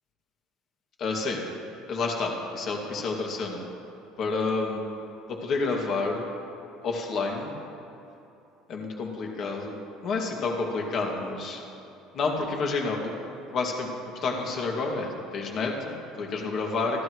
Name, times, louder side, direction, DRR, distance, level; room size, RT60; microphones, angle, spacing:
voice 1, 1.0-1.4 1.9-3.6 4.2-4.8 5.3-6.3 6.8-7.5 8.7-9.8 10.0-11.6 12.1-13.1 13.5-13.9 14.2-17.0, left 3 dB, 40° left, 0 dB, 2.3 m, -29 dB
28.0 x 12.0 x 3.2 m, 2.9 s
cardioid pair, 150°, 0 cm